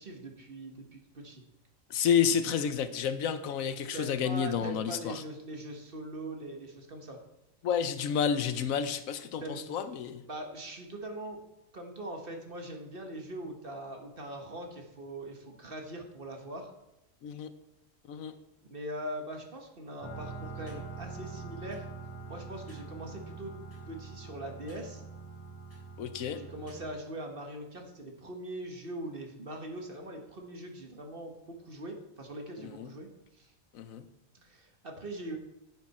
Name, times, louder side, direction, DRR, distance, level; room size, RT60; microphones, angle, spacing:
voice 1, 0.0-1.4 3.9-7.2 9.4-9.7 10.3-11.4 11.7-16.7 18.7-21.9 22.3-23.6 23.9-25.0 26.4-33.1 33.3-33.5 34.4-35.4, right 1 dB, 45° right, 3 dB, 1.6 m, -41 dB
voice 2, 1.9-5.2 7.6-10.3 17.2-17.5 18.1-18.3 26.0-26.4 32.6-32.9 33.7-34.0, left 7 dB, 80° left, 12 dB, 1.2 m, -30 dB
sound 1, 20.0-26.9, right 4 dB, 10° left, 3.4 m, -44 dB
10.5 x 8.6 x 4.2 m, 0.91 s
omnidirectional pair, 1.4 m